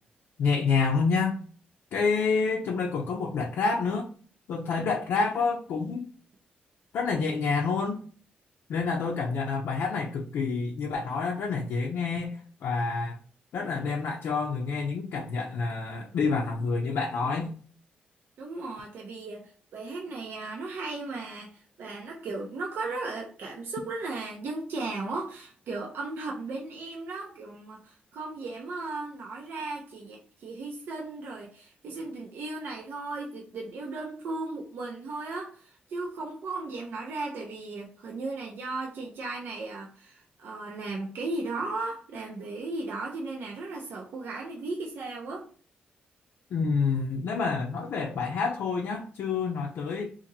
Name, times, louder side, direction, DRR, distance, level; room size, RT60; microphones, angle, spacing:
voice 1, 0.4-1.4 1.9-4.1 4.5-6.1 6.9-8.0 8.7-13.2 13.5-17.5 46.5-50.1, left 4 dB, 80° left, 0 dB, 0.5 m, -28 dB
voice 2, 18.4-45.5, right 3 dB, 75° right, -1 dB, 0.7 m, -36 dB
2.7 x 2.5 x 4.0 m, 0.43 s
cardioid pair, 80°, 4 cm